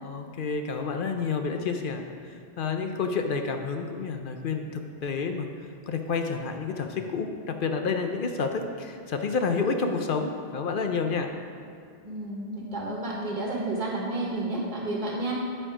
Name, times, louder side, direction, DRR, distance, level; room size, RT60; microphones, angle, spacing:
voice 1, 0.0-2.2 2.6-5.5 5.9-11.3, left 5 dB, 60° left, 5 dB, 0.7 m, -29 dB
voice 2, 12.0-15.3, right 2 dB, 45° right, -3 dB, 1.5 m, -31 dB
11.5 x 4.4 x 4.9 m, 2.4 s
omnidirectional pair, 1.0 m